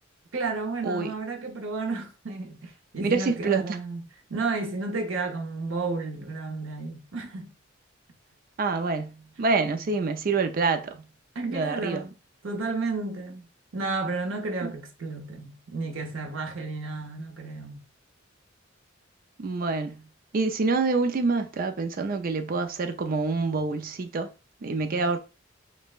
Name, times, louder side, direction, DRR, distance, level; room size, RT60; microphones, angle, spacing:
voice 1, 0.3-4.0 4.3-7.5 11.3-12.2 12.4-13.5 13.7-17.8, right 3 dB, 80° right, 0.7 m, -32 dB
voice 2, 3.0-3.8 8.6-9.1 9.4-11.0 11.5-12.0 14.6-14.7 19.4-20.0 20.3-24.3 24.6-25.2, right 4 dB, 45° right, 0.4 m, -26 dB
5.2 x 2.1 x 2.3 m
head